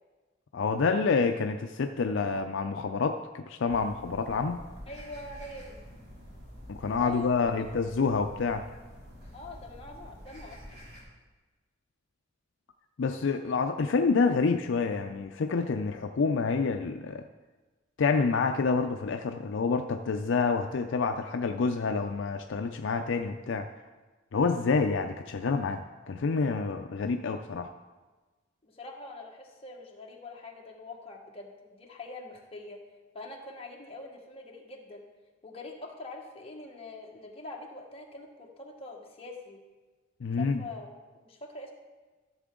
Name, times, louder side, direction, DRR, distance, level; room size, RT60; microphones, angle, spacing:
voice 1, 0.5-4.7 6.7-8.6 13.0-17.2 18.0-23.7 24.3-27.7 40.2-40.6, left 4 dB, 65° left, 6 dB, 0.4 m, -28 dB
sound 1, 3.7-11.0, equal, 55° right, 2.6 m, -48 dB
voice 2, 4.9-5.8 6.9-7.7 9.3-10.8 28.6-32.8 33.1-35.1 35.4-39.6 40.4-41.7, left 2 dB, 30° left, -1 dB, 1.3 m, -44 dB
13.5 x 6.8 x 3.7 m, 1.3 s
head